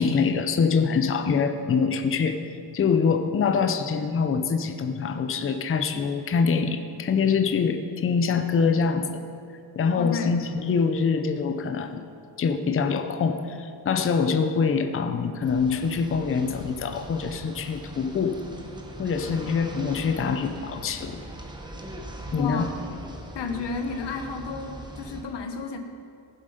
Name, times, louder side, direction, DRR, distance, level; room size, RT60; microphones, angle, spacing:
voice 1, 0.0-2.4 2.7-9.2 9.8-12.0 12.4-18.4 19.0-21.2 22.3-22.7, left 5 dB, 30° left, 7 dB, 0.6 m, -24 dB
voice 2, 9.9-10.4 22.4-22.7 23.3-25.8, left 4 dB, 65° left, 6 dB, 1.2 m, -32 dB
sound 1, 15.4-25.2, right 1 dB, 10° right, 1.0 m, -40 dB
15.0 x 7.7 x 5.2 m, 2.4 s
wide cardioid pair, 170°, 44 cm